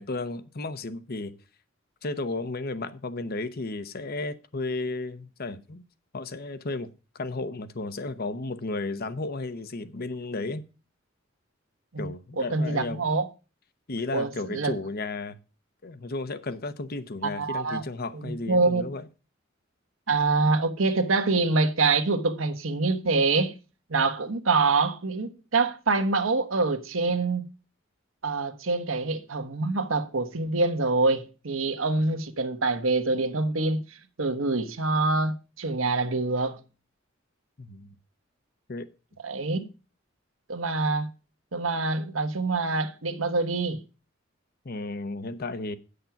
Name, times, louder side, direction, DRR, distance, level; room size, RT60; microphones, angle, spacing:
voice 1, 0.0-1.4 2.0-5.8 6.1-10.6 12.0-13.0 13.9-15.4 15.8-19.1 37.6-37.9 38.7-38.9 44.6-45.8, left 3 dB, 50° left, 0.9 m, -33 dB
voice 2, 12.4-13.3 14.1-14.7 17.2-17.8 18.1-18.9 20.1-23.5 23.9-27.4 28.2-36.6 39.2-39.7 40.5-41.1 41.5-43.8, right 3 dB, 80° right, 1.3 m, -25 dB
9.2 x 6.6 x 5.8 m
head